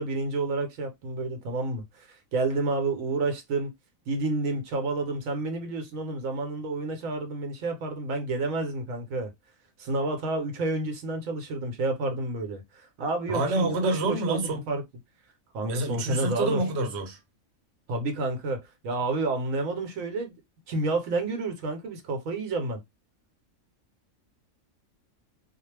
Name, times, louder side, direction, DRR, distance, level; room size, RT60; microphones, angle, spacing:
voice 1, 0.0-3.7 4.1-9.3 9.8-14.8 15.5-16.6 17.9-20.3 20.7-22.8, right 2 dB, 80° right, 1.1 m, -30 dB
voice 2, 13.3-14.6 15.6-17.2, right 2 dB, 60° right, 0.9 m, -27 dB
2.3 x 2.0 x 3.1 m
omnidirectional pair, 1.4 m